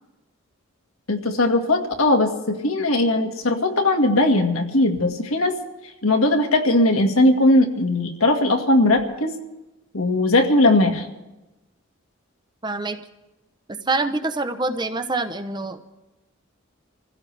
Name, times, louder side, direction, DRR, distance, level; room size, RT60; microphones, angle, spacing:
voice 1, 1.1-5.6 6.0-9.3 9.9-11.0, left 2 dB, 90° left, 3 dB, 1.9 m, -19 dB
voice 2, 12.6-13.0 13.9-15.8, right 3 dB, 20° right, 9 dB, 0.8 m, -25 dB
26.5 x 16.0 x 3.4 m, 1.0 s
head